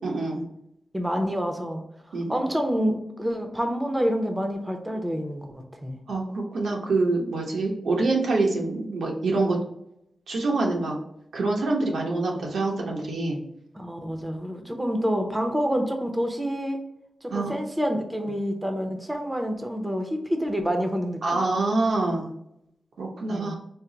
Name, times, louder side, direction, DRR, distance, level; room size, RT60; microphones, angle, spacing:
voice 1, 0.0-0.4 2.1-2.3 6.1-9.6 10.3-11.0 11.3-13.4 17.3-17.5 21.2-22.3 23.0-23.5, right 3 dB, 85° right, -1 dB, 0.9 m, -25 dB
voice 2, 0.9-1.8 2.3-6.0 13.7-16.8 17.2-21.2 23.3-23.5, equal, 10° right, 4 dB, 0.6 m, -27 dB
4.4 x 2.1 x 3.8 m, 0.78 s
wide cardioid pair, 100°, 0 cm